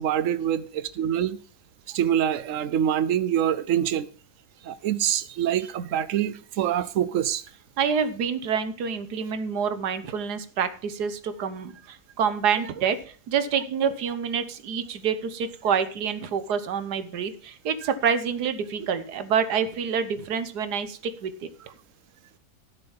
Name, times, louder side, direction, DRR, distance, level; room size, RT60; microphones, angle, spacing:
voice 1, 0.0-1.4 1.9-4.1 4.6-7.4, right 10 dB, 60° right, 1.0 m, -25 dB
voice 2, 7.8-21.5, right 7 dB, 80° right, 1.6 m, -27 dB
12.5 x 6.8 x 5.6 m
omnidirectional pair, 1.7 m